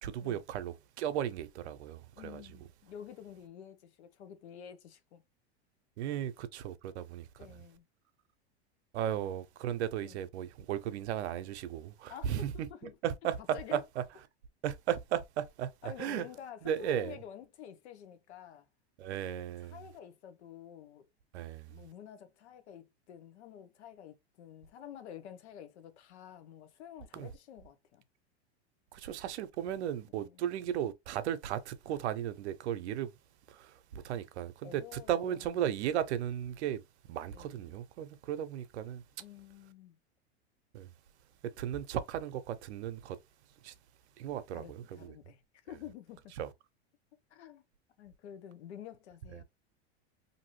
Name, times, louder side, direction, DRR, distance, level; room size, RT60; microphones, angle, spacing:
voice 1, 0.0-2.4 6.0-7.6 8.9-12.7 13.0-13.4 13.7-14.0 14.6-16.3 16.6-17.2 19.0-19.8 21.3-21.8 27.1-27.3 28.9-33.1 33.5-39.0 40.7-40.9 41.6-43.2 43.6-43.7 44.2-45.2 46.4-46.5 49.3-49.4, right 10 dB, 85° right, 0.6 m, -36 dB
voice 2, 2.2-5.2 7.4-7.8 9.1-9.3 10.0-10.2 12.1-13.0 13.5-13.8 15.8-18.7 19.7-21.1 21.7-28.0 30.1-30.4 34.6-35.5 37.3-37.5 39.2-40.0 44.5-46.3 47.3-47.6 48.0-49.4, left 9 dB, 80° left, 0.8 m, -49 dB
2.7 x 2.6 x 3.0 m
supercardioid pair, 120°, 33 cm